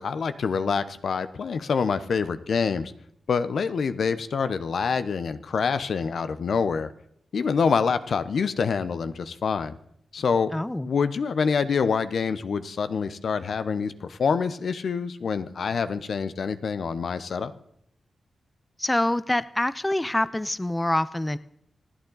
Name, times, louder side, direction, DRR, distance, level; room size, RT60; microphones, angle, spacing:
voice 1, 0.0-2.9 3.3-6.9 7.3-9.7 10.1-10.5 10.8-17.5, left 5 dB, 70° left, 12 dB, 0.8 m, -26 dB
voice 2, 10.5-10.9 18.8-21.4, left 1 dB, 15° left, 17 dB, 0.5 m, -25 dB
26.5 x 9.0 x 4.0 m, 0.73 s
supercardioid pair, 45°, 0 cm